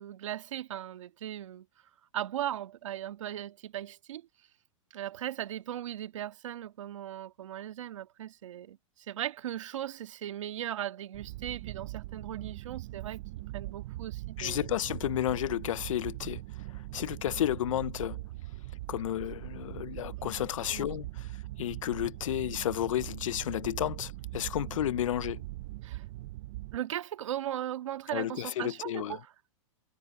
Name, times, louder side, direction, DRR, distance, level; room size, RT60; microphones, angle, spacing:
voice 1, 0.0-1.6 2.1-4.2 4.9-8.8 9.1-13.2 13.5-14.7 20.2-20.3 20.7-20.9 25.8-26.0 26.7-29.3, right 12 dB, 70° right, 1.7 m, -38 dB
sound 1, 11.1-26.8, right 17 dB, 30° right, 0.4 m, -41 dB
voice 2, 14.4-16.4 16.9-18.2 18.9-21.3 21.6-25.4 28.1-29.2, left 12 dB, 80° left, 0.6 m, -32 dB
supercardioid pair, 170°, 17 cm